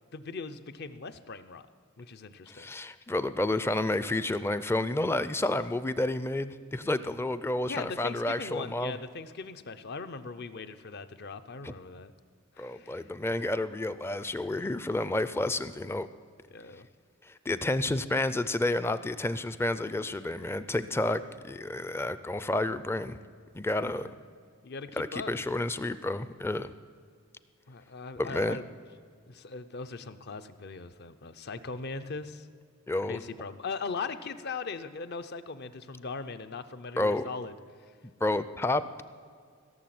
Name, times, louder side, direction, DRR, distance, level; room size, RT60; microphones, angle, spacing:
voice 1, 0.1-1.7 2.0-2.7 7.6-12.1 12.6-13.1 16.5-16.9 24.0-24.2 24.6-25.3 27.7-28.6 29.3-32.5 32.9-37.5, left 4 dB, 50° left, 11 dB, 0.6 m, -39 dB
voice 2, 2.5-9.0 11.6-11.7 12.6-16.1 17.2-23.2 23.5-24.1 25.0-26.7 28.2-28.6 32.9-33.2 37.0-37.3 38.0-39.0, left 2 dB, 10° left, 13 dB, 0.4 m, -30 dB
16.0 x 7.1 x 7.7 m, 2.1 s
head